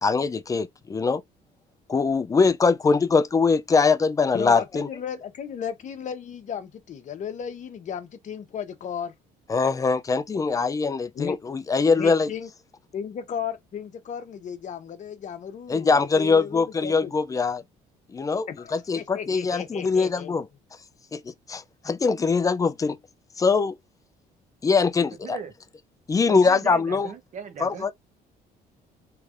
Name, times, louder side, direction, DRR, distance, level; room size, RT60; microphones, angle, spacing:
voice 1, 0.0-1.2 1.9-4.9 9.5-12.3 15.7-17.6 18.1-20.5 21.1-23.0 23.4-23.8 24.6-25.4 26.1-27.1 27.6-27.9, left 4 dB, 20° left, 0.4 m, -22 dB
voice 2, 4.3-9.1 11.1-11.4 12.0-12.5 12.9-17.1 18.5-20.3, left 8 dB, 45° left, 0.8 m, -35 dB
voice 3, 26.2-27.9, right 7 dB, 50° right, 0.8 m, -38 dB
3.3 x 3.2 x 2.5 m
cardioid pair, 110°, 17 cm